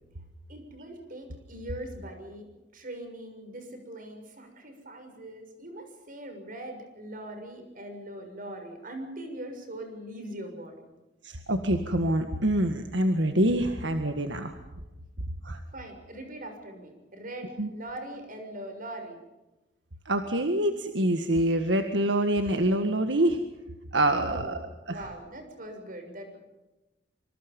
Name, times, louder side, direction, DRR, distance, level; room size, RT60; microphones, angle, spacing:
voice 1, 0.5-2.5 2.7-10.9 15.7-19.2 24.1-26.4, right 1 dB, 50° right, 5 dB, 6.7 m, -41 dB
voice 2, 11.2-14.5 15.4-15.6 17.6-17.7 20.1-23.4 23.9-24.6 24.9-25.0, right 1 dB, 75° right, 6 dB, 1.8 m, -25 dB
26.0 x 25.5 x 5.4 m, 1.0 s
head